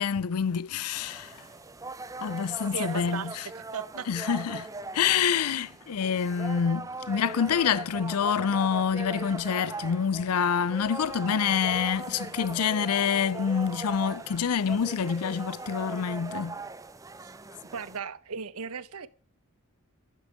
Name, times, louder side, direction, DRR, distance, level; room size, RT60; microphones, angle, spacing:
voice 1, 0.0-1.4 2.2-3.5 4.1-4.7 4.9-16.6, left 7 dB, 85° left, 0.5 m, -27 dB
sound 1, 0.9-18.0, right 3 dB, 15° right, 0.5 m, -40 dB
voice 2, 2.7-3.3 3.5-4.1 17.7-19.1, right 5 dB, 80° right, 0.8 m, -36 dB
12.0 x 11.0 x 5.0 m
head